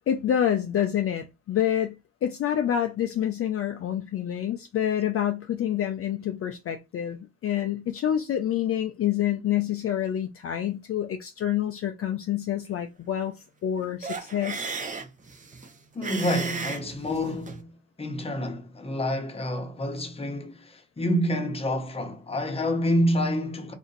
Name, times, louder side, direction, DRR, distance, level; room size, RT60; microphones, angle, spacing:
voice 1, 0.1-13.3 13.6-14.7, left 10 dB, 50° left, 0.5 m, -27 dB
sound 1, 14.0-17.6, right 4 dB, 25° right, 0.7 m, -35 dB
voice 2, 15.9-23.7, equal, 20° left, 0.9 m, -28 dB
2.8 x 2.6 x 3.9 m
cardioid pair, 90°, 30 cm